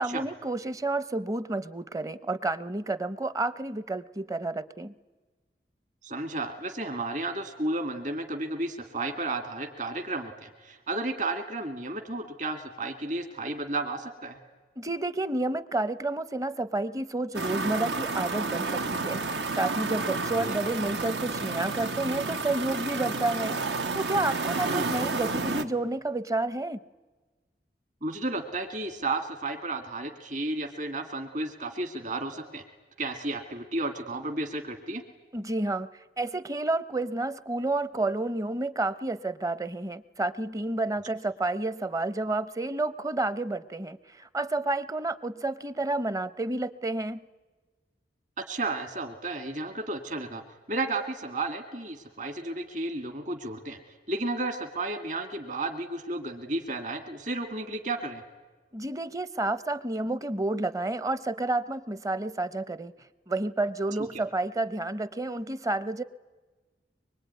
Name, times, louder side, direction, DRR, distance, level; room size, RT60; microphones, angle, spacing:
voice 1, 0.0-4.9 14.8-26.8 35.3-35.9 36.2-47.3 58.7-62.9 63.3-66.0, right 2 dB, 20° right, 17 dB, 0.7 m, -30 dB
voice 2, 6.0-14.4 20.4-20.5 24.6-24.9 28.0-32.6 33.0-35.0 48.4-50.4 50.7-53.8 54.1-58.2 64.1-64.2, right 2 dB, 45° right, 7 dB, 2.0 m, -33 dB
sound 1, 17.3-25.6, right 3 dB, 80° right, 1.4 m, -31 dB
24.0 x 23.5 x 9.4 m, 1.3 s
head